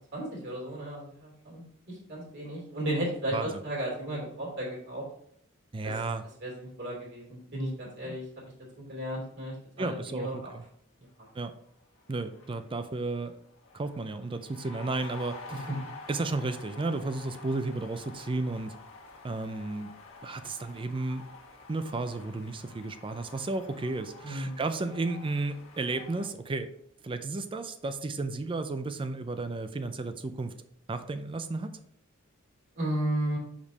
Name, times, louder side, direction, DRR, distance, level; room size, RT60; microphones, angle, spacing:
voice 1, 0.1-5.0 5.8-5.9 6.4-8.2 8.9-10.5 11.2-11.3 15.5-15.6 24.2-24.6 32.7-33.4, right 1 dB, 55° right, -3 dB, 2.6 m, -34 dB
voice 2, 5.7-6.2 8.0-8.1 9.8-10.6 11.4-11.5 12.1-13.3 13.7-15.7 16.1-18.7 19.2-19.9 20.2-21.2 21.7-26.7 27.0-30.5 30.9-31.7, right 3 dB, 25° right, 10 dB, 0.4 m, -33 dB
sound 1, 11.7-11.8 12.0-26.3, left 3 dB, 65° left, 1.5 m, -49 dB
5.3 x 5.1 x 4.0 m, 0.72 s
head